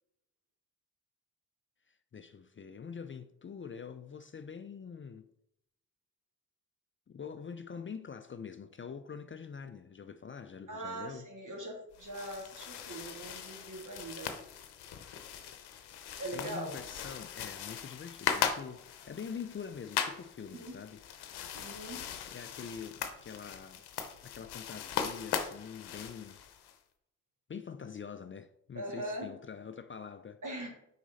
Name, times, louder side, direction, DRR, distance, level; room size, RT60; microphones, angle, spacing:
voice 1, 1.9-5.3 7.1-11.3 16.3-21.0 22.3-23.8 24.2-26.4 27.5-30.4, left 6 dB, 30° left, 0.5 m, -45 dB
voice 2, 10.7-14.3 16.2-16.7 20.5-20.8 21.5-22.1 28.7-29.3 30.4-30.7, right 1 dB, 50° right, 2.7 m, -41 dB
sound 1, 11.9-26.8, left 8 dB, 85° left, 0.8 m, -39 dB
6.1 x 5.0 x 4.0 m
supercardioid pair, 50°, 38 cm